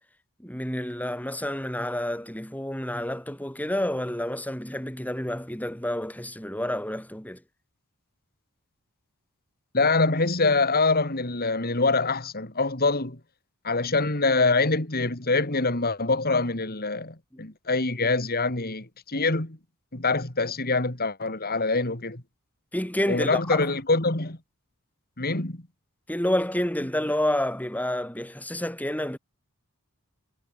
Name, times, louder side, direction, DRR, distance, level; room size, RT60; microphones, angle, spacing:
voice 1, 0.4-7.4 17.3-17.4 22.7-23.6 26.1-29.2, left 1 dB, 5° left, 4.6 m, -29 dB
voice 2, 9.7-13.2 13.6-19.6 19.9-22.2 23.1-24.4 25.2-25.6, left 3 dB, 45° left, 3.1 m, -25 dB
head